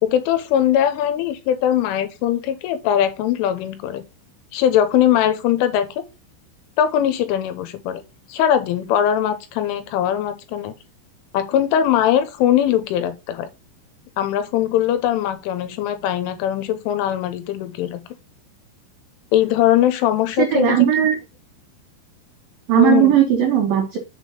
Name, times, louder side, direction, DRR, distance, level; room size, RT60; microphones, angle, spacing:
voice 1, 0.0-4.0 4.5-5.9 6.8-8.0 8.3-10.7 11.3-13.5 14.2-18.0 19.3-20.8 22.8-23.1, left 10 dB, 80° left, 3.3 m, -20 dB
voice 2, 20.4-21.2 22.7-24.0, right 10 dB, 80° right, 2.0 m, -16 dB
7.0 x 3.6 x 5.5 m
omnidirectional pair, 5.7 m